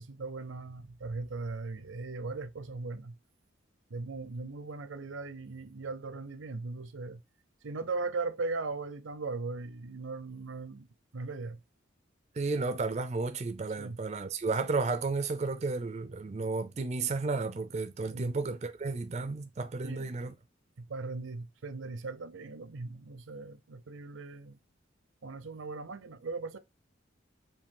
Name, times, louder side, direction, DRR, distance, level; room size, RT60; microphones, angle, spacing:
voice 1, 0.0-3.1 3.9-7.2 7.6-10.9 11.1-11.6 13.8-14.0 18.1-18.3 19.8-20.2 20.8-24.6 25.2-26.6, right 3 dB, 80° right, 0.6 m, -38 dB
voice 2, 12.4-20.3, right 3 dB, 35° right, 0.4 m, -33 dB
4.7 x 2.7 x 3.6 m
head